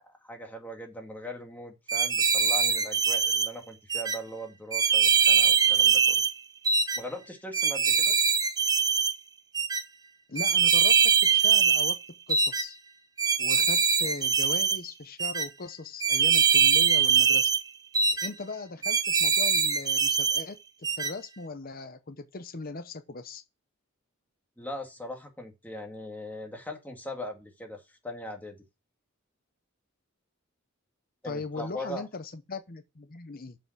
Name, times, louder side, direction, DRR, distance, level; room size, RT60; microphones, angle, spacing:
voice 1, 0.0-6.2 7.0-8.2 24.6-28.6 31.2-32.1, left 1 dB, 10° left, 2.1 m, -40 dB
sound 1, 1.9-3.5 3.9-4.2 4.7-6.3 6.7-7.0 7.5-9.1 9.5-9.8 10.4-12.0 12.3-12.6 13.2-14.8 15.2-15.5 16.0-17.6 17.9-18.3 18.8-20.4 20.8-21.1, right 6 dB, 20° right, 0.6 m, -23 dB
voice 2, 10.3-10.9 11.3-12.0 12.3-12.8 13.4-17.5 18.2-20.6 21.0-23.4 31.2-33.6, left 3 dB, 45° left, 0.8 m, -39 dB
7.2 x 5.6 x 6.0 m
head